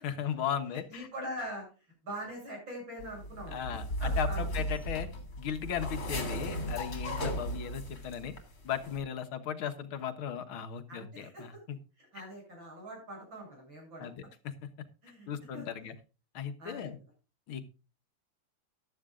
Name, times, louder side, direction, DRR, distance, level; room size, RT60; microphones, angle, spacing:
voice 1, 0.0-1.1 3.5-5.1 5.4-8.3 8.6-11.8 14.0-14.7 15.3-15.9 16.3-17.0 17.5-17.6, left 8 dB, 75° left, 9 dB, 2.1 m, -36 dB
voice 2, 0.9-1.7 2.0-4.6 7.2-7.4 10.9-11.6 12.0-14.1 15.0-15.7 16.6-16.9, equal, 60° right, 0 dB, 8.9 m, -43 dB
sound 1, 3.0-8.4 8.7-9.0, equal, 45° left, 3.4 m, -36 dB
14.5 x 12.0 x 2.4 m, 0.32 s
omnidirectional pair, 2.3 m